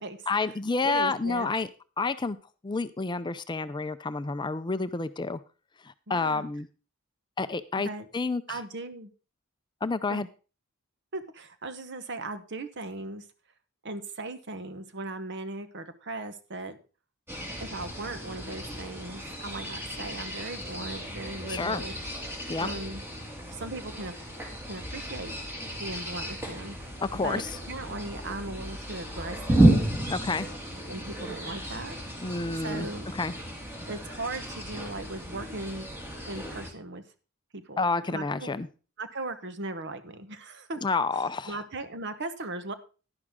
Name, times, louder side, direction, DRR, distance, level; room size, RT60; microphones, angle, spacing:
voice 1, 0.3-1.7 2.0-2.4 2.6-5.4 5.8-6.7 7.4-8.6 9.8-10.3 21.5-21.8 22.5-22.7 27.0-27.6 30.1-30.5 32.2-33.3 37.8-38.7 40.8-41.6, left 3 dB, 20° left, 12 dB, 0.4 m, -29 dB
voice 2, 0.8-1.5 6.1-6.4 7.8-8.1 8.5-9.1 10.1-10.2 11.1-13.2 13.8-16.8 17.6-21.9 22.6-23.0 23.5-24.1 24.6-25.4 25.8-26.9 27.2-29.7 30.9-31.9 32.6-33.1 33.9-35.9 36.3-37.0 37.5-38.5 39.0-40.8 41.5-42.7, right 2 dB, 55° right, 11 dB, 1.1 m, -38 dB
sound 1, 17.3-36.7, right 1 dB, 10° right, 2.2 m, -32 dB
11.0 x 11.0 x 3.7 m, 0.34 s
head